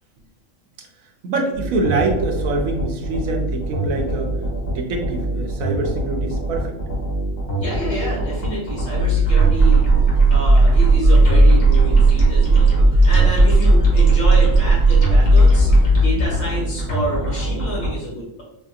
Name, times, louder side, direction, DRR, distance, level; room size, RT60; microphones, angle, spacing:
voice 1, 1.2-4.3 4.6-6.7, right 3 dB, 80° right, 2 dB, 1.1 m, -24 dB
sound 1, 1.5-17.9, right 1 dB, 45° left, 1.2 m, -24 dB
voice 2, 7.5-9.8 10.3-18.4, equal, 85° left, -6 dB, 2.2 m, -28 dB
sound 2, 8.9-16.3, right 2 dB, 55° right, 0.4 m, -14 dB
4.3 x 2.7 x 2.3 m, 0.82 s
omnidirectional pair, 1.4 m